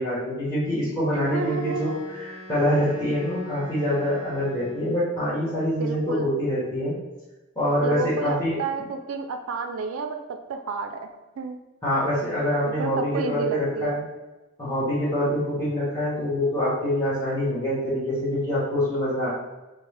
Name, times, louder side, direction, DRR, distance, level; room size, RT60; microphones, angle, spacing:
voice 1, 0.0-6.9 7.6-8.6 11.8-14.0 14.6-19.3, equal, 15° left, -13 dB, 0.9 m, -25 dB
Wind instrument woodwind instrument, 1.0-5.2, left 1 dB, 45° left, 1.3 m, -44 dB
voice 2, 1.1-1.9 5.8-6.3 7.8-10.2 10.5-11.1 11.4-11.6 12.7-14.0, right 5 dB, 85° right, 6 dB, 0.4 m, -31 dB
4.3 x 2.1 x 3.2 m, 1.1 s
head